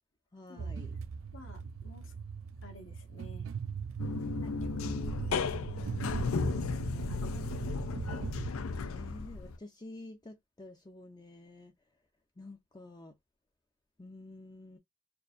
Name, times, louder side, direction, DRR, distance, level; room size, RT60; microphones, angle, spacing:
voice 1, 0.3-0.9 8.9-11.7 12.4-13.2 14.0-14.8, left 2 dB, 20° left, 0.5 m, -49 dB
sound 1, 0.6-8.5, right 6 dB, 70° right, 0.4 m, -40 dB
voice 2, 1.3-2.2 2.6-3.5 4.3-6.0 6.6-7.9, left 1 dB, 65° left, 1.4 m, -53 dB
sound 2, 4.0-9.6, left 4 dB, 80° left, 0.5 m, -34 dB
4.5 x 2.6 x 2.5 m
head